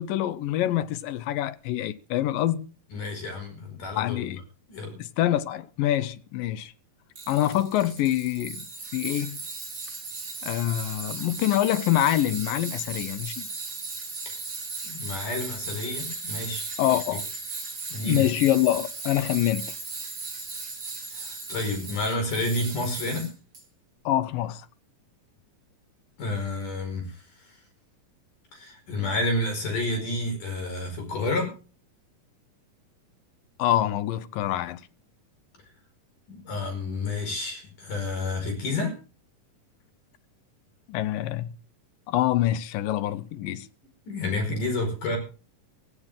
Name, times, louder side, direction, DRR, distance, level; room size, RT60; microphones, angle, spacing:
voice 1, 0.0-2.7 4.0-4.4 5.0-6.7 7.3-8.6 8.9-9.4 10.4-13.5 16.8-17.3 18.0-19.7 24.1-24.6 33.6-34.8 40.9-41.5 42.1-43.7, left 13 dB, 85° left, 2.5 m, -25 dB
voice 2, 2.9-4.4 4.7-5.0 14.3-14.4 14.8-16.6 17.9-18.3 21.1-23.3 26.2-27.1 28.5-31.5 36.3-38.9 44.1-45.2, left 2 dB, 65° left, 6.7 m, -30 dB
Tools, 7.2-23.6, right 4 dB, 35° right, 3.6 m, -37 dB
16.5 x 16.5 x 3.7 m
omnidirectional pair, 3.9 m